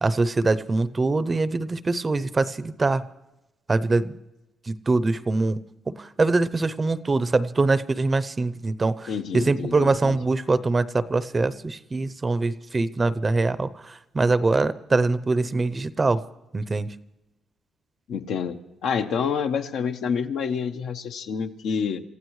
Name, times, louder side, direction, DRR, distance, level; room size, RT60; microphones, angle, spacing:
voice 1, 0.0-3.0 3.7-4.2 4.7-5.6 5.9-16.2 16.5-16.9, right 3 dB, 25° right, 15 dB, 0.6 m, -23 dB
voice 2, 9.1-10.2 18.1-18.6 18.8-22.0, left 6 dB, 75° left, 6 dB, 1.0 m, -28 dB
27.5 x 15.0 x 3.2 m, 0.95 s
cardioid pair, 90°, 0 cm